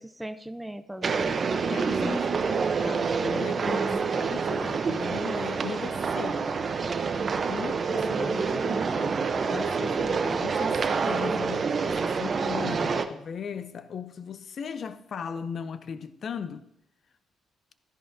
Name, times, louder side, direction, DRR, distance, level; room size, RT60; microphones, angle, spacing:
voice 1, 0.0-2.2 3.6-4.0, right 1 dB, 5° right, 0.5 m, -37 dB
sound 1, 1.0-13.0, right 5 dB, 45° right, 0.7 m, -27 dB
voice 2, 1.7-3.8 4.2-6.6 7.5-16.7, left 6 dB, 55° left, 0.6 m, -38 dB
13.5 x 10.5 x 2.7 m
cardioid pair, 90°, 0 cm